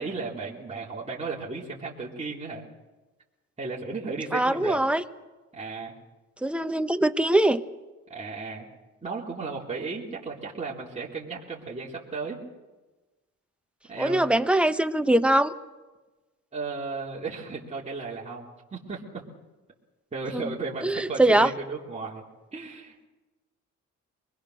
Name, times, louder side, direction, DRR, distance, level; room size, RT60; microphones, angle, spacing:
voice 1, 0.0-2.6 3.6-4.8 5.5-5.9 8.1-8.7 9.0-12.4 13.9-14.2 16.5-19.2 20.1-22.2 22.5-23.1, right 4 dB, 20° right, -5 dB, 3.5 m, -35 dB
voice 2, 4.3-5.0 6.4-7.6 14.0-15.5 20.3-20.5 20.8-21.5, right 1 dB, 5° right, 9 dB, 1.0 m, -22 dB
25.0 x 20.5 x 6.5 m, 1.2 s
cardioid pair, 90°, 30 cm